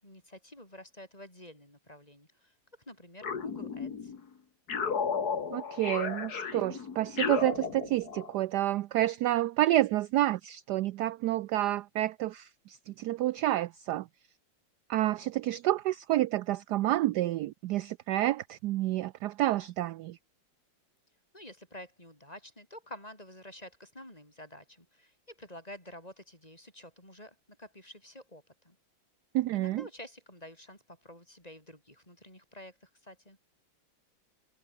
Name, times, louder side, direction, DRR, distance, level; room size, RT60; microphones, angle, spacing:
voice 1, 0.0-4.1 21.3-28.8 29.5-33.4, left 1 dB, 20° left, 6.7 m, -50 dB
sound 1, 3.2-4.2 4.7-8.3, left 6 dB, 50° left, 2.4 m, -34 dB
voice 2, 5.5-14.1 14.9-20.2 29.3-29.8, right 15 dB, 75° right, 1.0 m, -29 dB
omnidirectional pair, 2.2 m